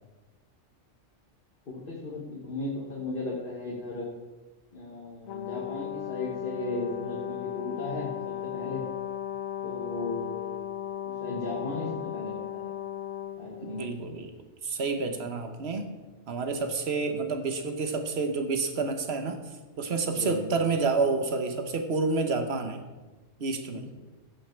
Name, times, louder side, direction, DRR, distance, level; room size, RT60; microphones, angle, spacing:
voice 1, 1.7-4.1 4.7-8.8 9.6-10.7 11.1-12.7 13.4-13.9 15.0-15.2 20.1-20.4 23.7-23.9, left 2 dB, 45° left, -3 dB, 1.5 m, -36 dB
Brass instrument, 5.3-14.0, left 11 dB, 90° left, 1.1 m, -36 dB
voice 2, 13.6-14.3 14.6-15.9 16.3-19.4 19.8-22.8 23.4-23.9, right 4 dB, 55° right, 6 dB, 1.2 m, -29 dB
15.5 x 5.4 x 4.5 m, 1.2 s
omnidirectional pair, 1.3 m